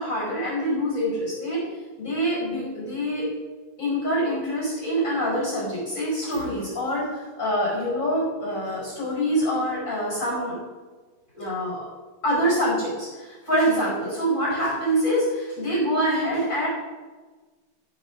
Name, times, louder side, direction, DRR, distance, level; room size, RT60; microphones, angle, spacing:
voice 1, 0.0-1.6 2.0-3.3 3.8-10.5 11.3-11.9 12.2-16.7, equal, 35° left, -6 dB, 5.7 m, -25 dB
14.5 x 8.7 x 6.2 m, 1.3 s
omnidirectional pair, 2.3 m